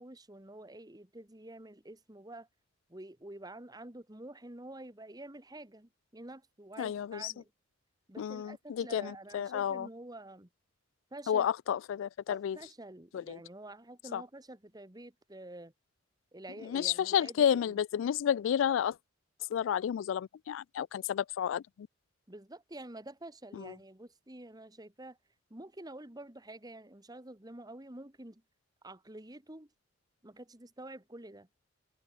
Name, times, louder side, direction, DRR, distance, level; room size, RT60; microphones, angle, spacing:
voice 1, 0.0-2.5 2.9-7.5 8.1-10.5 11.1-11.5 12.3-15.7 16.3-17.8 22.3-25.2 25.5-28.4 28.8-29.7 30.2-31.5, right 1 dB, 20° right, 1.8 m, -48 dB
voice 2, 6.8-7.3 8.2-9.9 11.3-12.6 13.1-13.4 14.1-14.2 16.6-19.0 19.5-21.9 23.5-23.7, left 9 dB, 80° left, 0.3 m, -31 dB
head